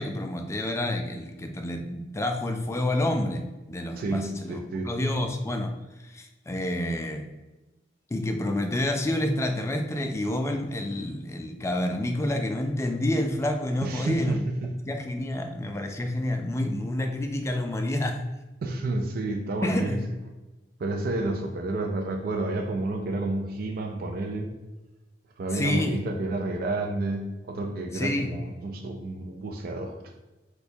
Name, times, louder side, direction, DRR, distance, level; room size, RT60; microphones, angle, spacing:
voice 1, 0.0-5.7 6.0-7.3 8.1-14.4 14.9-18.2 19.6-20.0 25.5-26.0 27.9-28.3, left 1 dB, 15° left, 5 dB, 0.3 m, -28 dB
voice 2, 4.0-4.9 13.8-14.8 18.6-20.0 20.8-24.5 25.4-30.0, right 2 dB, 55° right, 3 dB, 0.4 m, -30 dB
4.3 x 2.2 x 2.7 m, 1.1 s
head